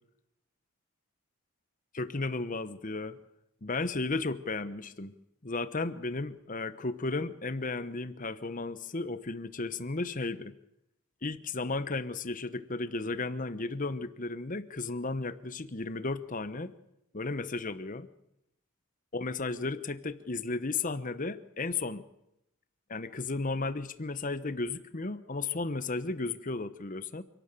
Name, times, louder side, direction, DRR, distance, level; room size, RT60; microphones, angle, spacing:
voice 1, 1.9-3.2 3.6-5.1 5.4-10.6 11.2-16.7 17.1-18.1 19.1-22.0 22.9-27.2, left 3 dB, 35° left, 14 dB, 0.9 m, -34 dB
27.0 x 12.5 x 8.9 m, 0.83 s
head